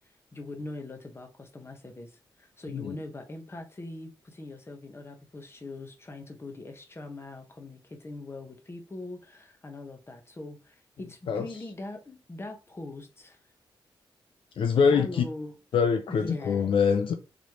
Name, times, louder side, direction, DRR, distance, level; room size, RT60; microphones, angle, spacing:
voice 1, 0.3-13.4 14.8-15.6 16.1-16.8, left 2 dB, 25° left, 1.1 m, -41 dB
voice 2, 14.6-15.2 15.7-17.1, left 6 dB, 70° left, 0.5 m, -24 dB
4.0 x 3.2 x 3.0 m
cardioid pair, 70°, 9 cm